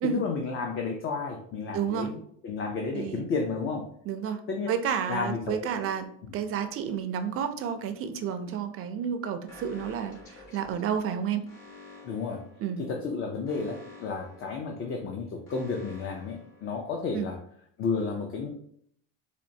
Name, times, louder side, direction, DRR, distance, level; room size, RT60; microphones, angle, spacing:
voice 1, 0.0-3.9 4.5-4.7 5.1-5.6 12.0-12.4 12.8-17.4 17.8-18.5, left 4 dB, 35° left, 1 dB, 0.5 m, -32 dB
voice 2, 1.7-2.1 2.9-3.2 4.1-4.4 4.7-6.1 6.3-11.4 12.6-12.9 17.1-17.3, right 8 dB, 40° right, 8 dB, 0.4 m, -30 dB
Alarm, 9.5-17.2, left 3 dB, 55° left, 1.5 m, -51 dB
4.3 x 2.5 x 2.7 m, 0.67 s
cardioid pair, 125°, 35 cm